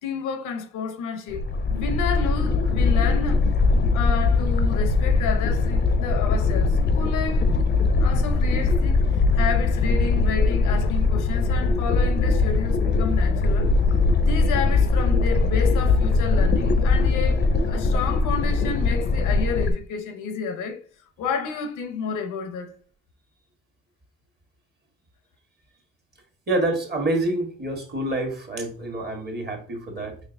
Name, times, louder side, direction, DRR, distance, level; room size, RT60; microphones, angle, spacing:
voice 1, 0.0-3.5 3.9-7.5 8.0-13.7 14.2-20.8 21.2-22.8, left 6 dB, 90° left, 0.7 m, -31 dB
sound 1, 1.3-19.7, left 3 dB, 35° left, 0.5 m, -21 dB
voice 2, 26.5-30.2, right 2 dB, 35° right, 1.2 m, -27 dB
4.3 x 2.9 x 2.5 m
cardioid pair, 90°, 30 cm